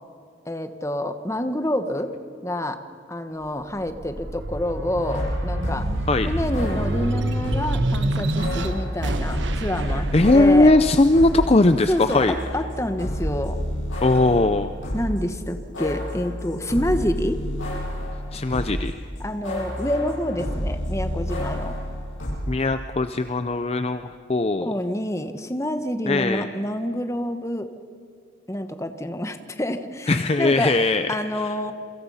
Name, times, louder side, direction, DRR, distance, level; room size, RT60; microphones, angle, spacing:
voice 1, 0.4-2.1 2.4-2.8 3.1-5.9 6.3-10.7 11.9-13.6 14.9-17.4 19.2-21.8 24.6-27.7 28.5-30.8 31.1-31.7, left 1 dB, 15° left, 9 dB, 1.1 m, -27 dB
sound 1, 3.5-14.2 14.7-15.9, right 1 dB, 75° right, 1.5 m, -29 dB
sound 2, 5.0-7.8 8.4-11.5 11.8-18.9 19.2-22.4, equal, 90° left, 7.9 m, -30 dB
voice 2, 9.9-12.4 14.0-14.7 18.3-18.9 22.5-24.7 26.1-26.5 30.1-31.5, left 2 dB, 30° left, 10 dB, 0.5 m, -19 dB
28.0 x 24.0 x 5.6 m, 2.4 s
head